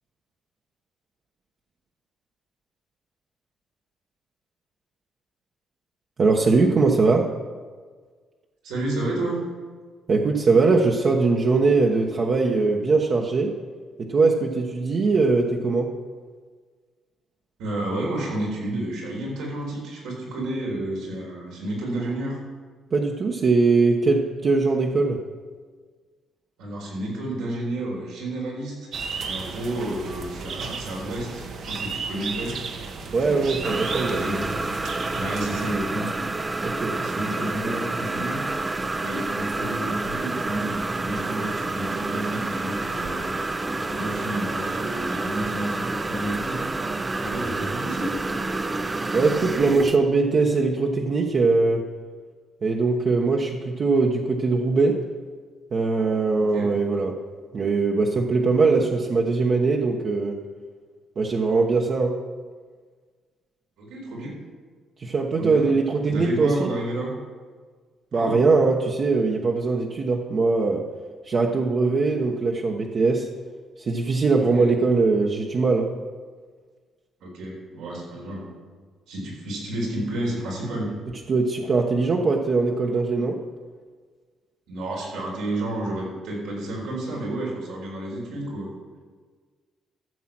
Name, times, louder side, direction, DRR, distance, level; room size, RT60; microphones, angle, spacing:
voice 1, 6.2-7.3 10.1-13.5 14.0-15.9 22.9-25.2 33.1-34.2 36.6-36.9 49.1-51.8 52.6-55.0 55.7-57.1 57.5-60.4 61.2-62.2 65.0-66.7 68.1-70.8 71.3-73.3 73.9-75.9 81.3-83.4, right 3 dB, 50° right, -1 dB, 1.2 m, -21 dB
voice 2, 8.6-9.4 17.6-22.4 26.6-28.9 29.2-32.6 33.2-34.4 35.1-36.1 36.9-43.3 43.8-46.7 47.1-48.1 56.4-56.7 63.8-64.3 65.4-65.6 66.0-67.1 68.1-68.4 74.5-74.7 77.2-78.5 79.1-80.9 84.7-88.7, right 1 dB, 90° right, -2 dB, 4.2 m, -31 dB
sound 1, 28.9-35.7, right 4 dB, 65° right, 1.3 m, -34 dB
sound 2, 33.6-50.0, right 2 dB, 20° right, 0.6 m, -28 dB
14.0 x 7.4 x 6.1 m, 1.5 s
cardioid pair, 90°, 0 cm